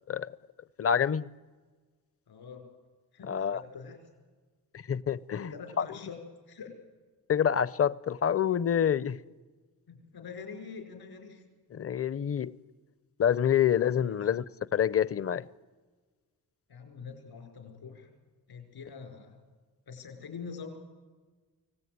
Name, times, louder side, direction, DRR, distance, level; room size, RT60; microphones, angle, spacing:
voice 1, 0.8-1.3 3.3-3.6 4.7-5.5 5.8-5.9 7.3-9.2 11.7-12.6 13.2-14.4 14.7-15.5, left 8 dB, 40° left, 0.6 m, -27 dB
voice 2, 2.3-2.7 3.1-4.0 5.4-6.8 9.9-11.5 14.0-14.3 16.7-18.1 18.5-19.4 19.9-20.8, left 5 dB, 80° left, 5.3 m, -45 dB
24.5 x 17.5 x 9.5 m
cardioid pair, 95°, 38 cm